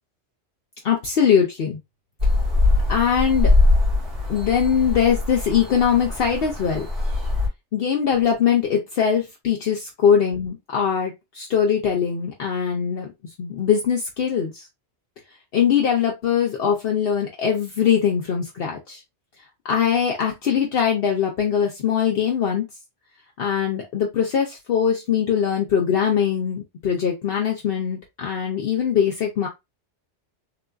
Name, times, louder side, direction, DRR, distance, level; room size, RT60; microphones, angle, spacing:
voice 1, 0.8-1.8 2.9-3.5 4.3-6.9 7.7-13.1 13.4-14.7 15.5-19.0 19.6-22.7 23.4-29.5, left 7 dB, 65° left, 0 dB, 0.8 m, -21 dB
sound 1, 2.2-7.5, left 2 dB, 55° right, 1.8 m, -22 dB
3.7 x 2.5 x 2.3 m, 0.21 s
omnidirectional pair, 1.2 m